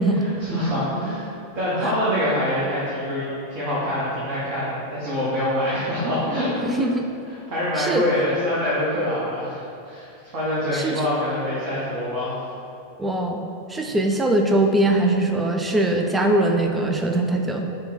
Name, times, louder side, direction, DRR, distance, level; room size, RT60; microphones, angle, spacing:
voice 1, 0.1-6.8 7.2-10.1 10.3-12.3 13.9-14.0, left 1 dB, 40° right, -8 dB, 0.8 m, -25 dB
voice 2, 6.7-7.1 7.8-8.0 10.7-11.0 13.0-13.4 13.7-17.6, right 1 dB, 10° right, 3 dB, 0.3 m, -21 dB
3.6 x 2.2 x 3.9 m, 2.6 s
figure-of-eight pair, 90°, 0 cm